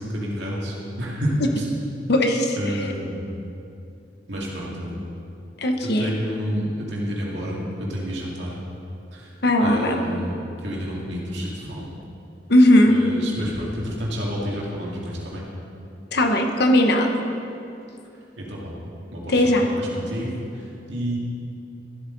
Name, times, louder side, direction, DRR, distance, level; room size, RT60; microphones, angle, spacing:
voice 1, 0.0-1.3 2.6-3.2 4.3-4.9 6.0-7.6 7.9-8.5 9.6-10.3 10.6-11.9 12.9-15.4 18.4-18.7 19.1-19.2 19.6-20.3 20.9-21.2, equal, 70° right, -4 dB, 2.3 m, -29 dB
voice 2, 2.1-2.9 5.6-6.1 9.4-10.0 12.5-13.0 16.1-17.1 19.3-19.7, left 1 dB, 60° left, 4 dB, 1.0 m, -18 dB
13.5 x 8.0 x 4.0 m, 2.7 s
head